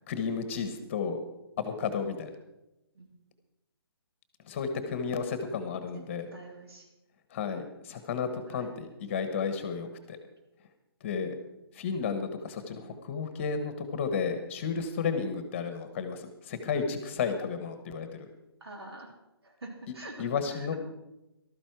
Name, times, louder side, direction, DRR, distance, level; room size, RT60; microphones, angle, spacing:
voice 1, 0.1-1.2 1.6-2.3 4.4-6.3 7.3-10.2 11.0-11.3 11.7-18.3 20.2-20.7, left 6 dB, 30° left, 8 dB, 1.2 m, -32 dB
voice 2, 6.3-6.9 8.5-8.7 12.7-13.0 18.6-19.1 19.4-20.8, right 2 dB, 70° right, 2 dB, 3.6 m, -46 dB
14.0 x 12.5 x 4.7 m, 0.95 s
hypercardioid pair, 155°, 14 cm